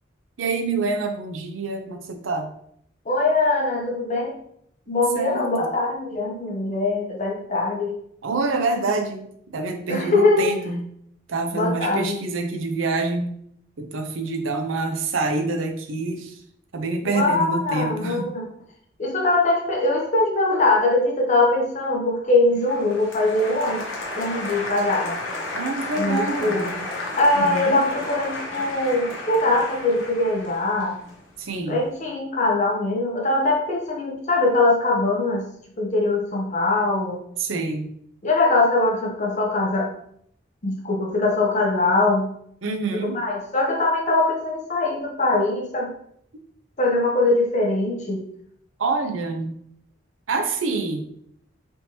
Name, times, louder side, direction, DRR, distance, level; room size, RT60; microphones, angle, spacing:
voice 1, 0.4-2.5 5.1-5.7 8.2-9.3 9.5-10.9 11.3-13.3 13.8-16.4 16.7-18.3 25.5-26.7 27.3-27.8 31.4-31.8 37.4-37.9 42.6-43.2 48.8-49.5 50.3-51.0, right 3 dB, 90° right, 5 dB, 0.6 m, -26 dB
voice 2, 3.1-4.3 4.9-8.0 9.9-10.5 11.5-12.2 17.0-18.5 19.0-23.8 24.1-25.2 26.0-26.9 27.2-31.0 31.7-35.4 35.8-37.2 38.2-39.9 40.6-42.3 42.9-45.9 46.8-48.3, left 2 dB, 35° left, 0 dB, 0.6 m, -22 dB
Applause, 22.6-31.7, left 2 dB, 80° left, 0.8 m, -33 dB
3.5 x 2.9 x 2.8 m, 0.68 s
head